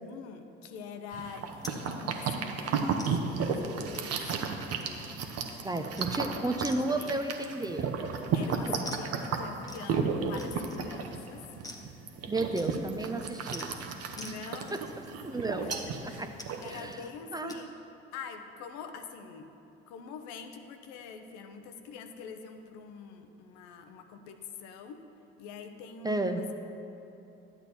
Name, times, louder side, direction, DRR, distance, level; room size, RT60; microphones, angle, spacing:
voice 1, 0.0-4.8 5.0-6.4 7.0-7.1 8.3-11.4 13.2-13.4 14.2-14.8 15.6-16.3 16.6-17.8 18.1-19.5 19.9-25.1 25.4-26.4, left 5 dB, 65° left, 7 dB, 0.8 m, -45 dB
sound 1, 1.1-16.9, right 5 dB, 50° right, 1.0 m, -34 dB
sound 2, 1.6-1.8 2.2-2.4 3.0-3.2 3.9-4.2 4.7-5.0 5.3-5.5 6.0-6.2 6.7-6.8 7.1-7.5 8.9-9.1 9.7-9.9 10.4-10.9 11.6-11.9 12.6-12.9 13.5-13.7 14.2-14.4 14.7-15.2 15.7-15.9 16.4-17.1 17.5-17.6, left 2 dB, 10° left, 1.1 m, -45 dB
voice 2, 5.6-8.0 9.1-9.2 12.3-14.1 14.7-14.8 15.2-15.7 16.2-16.3 16.7-17.0 17.3-17.6 26.0-26.4, right 2 dB, 10° right, 7 dB, 0.6 m, -33 dB
11.5 x 8.0 x 4.2 m, 2.9 s
hypercardioid pair, 55°, 31 cm